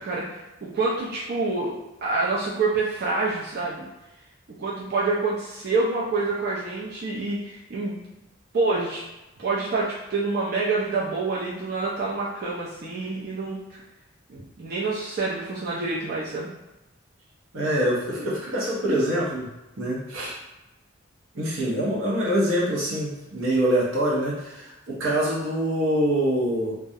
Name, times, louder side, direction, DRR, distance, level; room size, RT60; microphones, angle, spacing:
voice 1, 0.0-3.9 4.6-8.0 8.5-9.0 9.4-13.8 14.3-16.5, right 3 dB, 50° right, -6 dB, 0.4 m, -27 dB
voice 2, 17.5-19.5 19.8-20.3 21.3-26.7, right 1 dB, 85° right, -5 dB, 0.8 m, -25 dB
2.3 x 2.1 x 2.7 m, 1.0 s
head